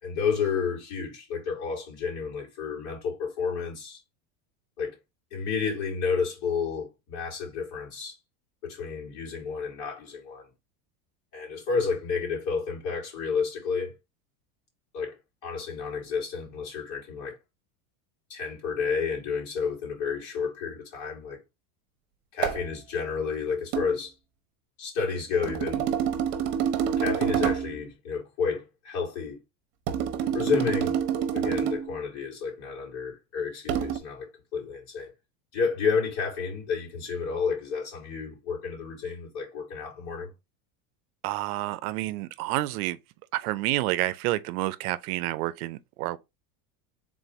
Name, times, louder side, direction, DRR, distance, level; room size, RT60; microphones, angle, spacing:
voice 1, 0.0-4.0 4.8-5.0 5.3-8.2 8.6-10.5 11.3-13.9 14.9-15.2 15.4-17.4 18.3-21.4 22.3-24.1 24.8-25.9 27.0-29.4 30.3-31.0 31.3-35.1 35.5-40.3, left 5 dB, 55° left, 2.7 m, -31 dB
sound 1, 22.4-22.7 23.7-23.9 25.4-27.8 29.9-31.9 33.7-34.0, right 8 dB, 50° right, 0.9 m, -27 dB
voice 2, 41.2-43.0 43.3-46.2, right 17 dB, 70° right, 0.6 m, -29 dB
3.8 x 2.6 x 4.6 m
supercardioid pair, 130°, 45 cm